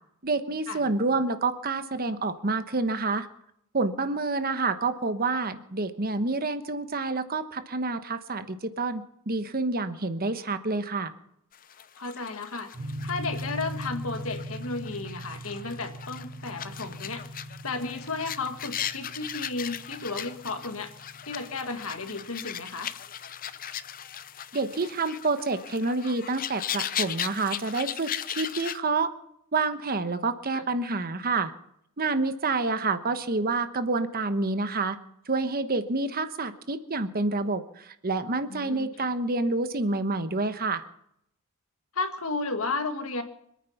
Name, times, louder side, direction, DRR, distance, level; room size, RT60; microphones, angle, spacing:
voice 1, 0.2-3.3 3.7-11.1 24.5-29.1 29.5-31.5 32.0-35.0 35.3-40.9, right 3 dB, 40° right, 10 dB, 1.1 m, -28 dB
sound 1, 11.5-28.8, left 10 dB, 40° left, 0.6 m, -38 dB
voice 2, 12.0-12.7 13.0-17.2 17.6-20.9 21.3-22.9 30.5-30.7 38.5-39.1 41.9-43.2, left 3 dB, 65° left, 7 dB, 1.8 m, -33 dB
sound 2, 12.7-22.9, equal, 10° right, 3.8 m, -40 dB
25.5 x 9.5 x 5.8 m, 0.74 s
head